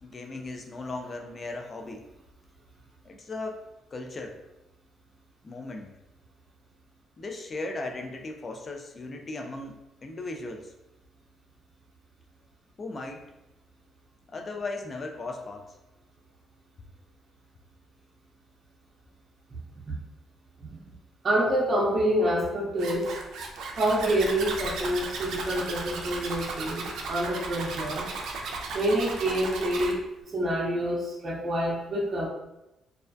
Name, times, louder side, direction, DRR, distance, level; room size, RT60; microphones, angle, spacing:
voice 1, 0.0-2.1 3.0-3.6 3.9-4.4 5.4-5.9 7.2-10.7 12.8-13.3 14.3-15.8, left 2 dB, 40° left, 3 dB, 0.4 m, -37 dB
voice 2, 20.6-20.9 21.2-23.2 23.7-28.1 28.7-32.3, right 1 dB, 40° right, -5 dB, 0.6 m, -27 dB
Zipper (clothing), 22.8-29.9, right 3 dB, 80° right, 0.4 m, -35 dB
2.3 x 2.1 x 2.5 m, 0.93 s
cardioid pair, 90°, 0 cm